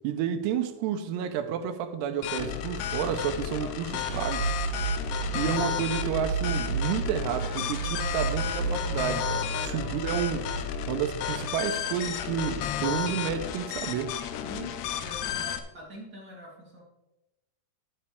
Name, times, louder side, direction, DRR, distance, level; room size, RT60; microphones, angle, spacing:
voice 1, 0.0-4.5 5.3-10.5 10.9-14.2, right 9 dB, 90° right, 2.8 m, -30 dB
sound 1, 2.2-15.6, left 10 dB, 90° left, 2.8 m, -33 dB
voice 2, 3.6-4.1 7.4-8.1 9.5-9.8 14.4-16.8, equal, 30° right, 3.2 m, -44 dB
sound 2, 4.1-12.7, right 6 dB, 70° right, 2.2 m, -33 dB
sound 3, 7.8-14.0, left 7 dB, 35° left, 4.3 m, -46 dB
11.0 x 9.7 x 3.4 m
omnidirectional pair, 4.7 m